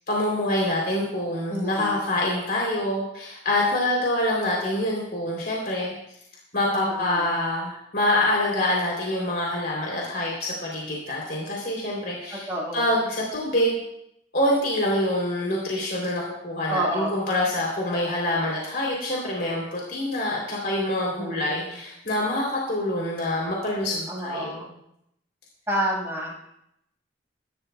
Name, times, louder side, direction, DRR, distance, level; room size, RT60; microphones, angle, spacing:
voice 1, 0.1-5.9 6.5-12.5 12.7-13.8 14.3-24.6, left 1 dB, 55° left, -3 dB, 3.3 m, -26 dB
voice 2, 1.5-2.1 6.8-7.4 12.3-13.0 16.7-17.3 21.2-21.8 24.1-24.7 25.7-26.5, right 1 dB, 15° right, -4 dB, 5.7 m, -30 dB
21.5 x 13.0 x 2.3 m, 0.79 s
head